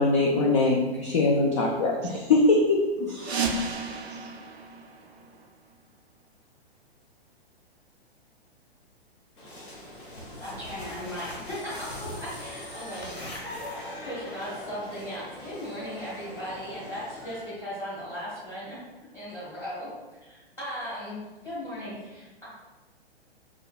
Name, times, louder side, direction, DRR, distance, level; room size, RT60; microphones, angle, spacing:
voice 1, 0.0-3.4, left 2 dB, 30° left, 0 dB, 0.4 m, -23 dB
voice 2, 3.2-5.5, right 6 dB, 40° right, 3 dB, 0.6 m, -51 dB
sound 1, 3.2-5.8, right 4 dB, 85° right, 0.5 m, -33 dB
sound 2, 9.4-17.4, left 1 dB, 55° left, 1.1 m, -42 dB
sound 3, 9.7-14.2, equal, 75° left, 1.1 m, -43 dB
voice 3, 10.4-13.2 14.0-18.8 19.1-19.9 20.2-22.5, equal, 10° left, -9 dB, 1.1 m, -37 dB
6.1 x 2.2 x 2.3 m, 1.2 s
figure-of-eight pair, 115°, 31 cm